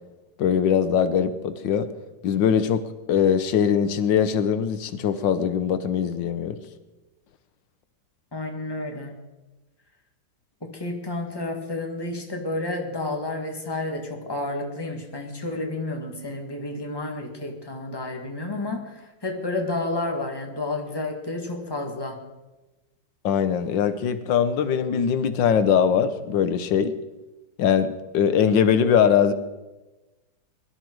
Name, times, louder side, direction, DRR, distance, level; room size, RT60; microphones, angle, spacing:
voice 1, 0.4-1.9 2.2-6.6 23.2-26.9 27.6-29.3, left 8 dB, 85° left, 11 dB, 1.6 m, -21 dB
voice 2, 8.3-9.2 10.6-22.2, left 2 dB, 15° left, 2 dB, 1.9 m, -31 dB
22.0 x 12.5 x 4.7 m, 1.1 s
omnidirectional pair, 1.9 m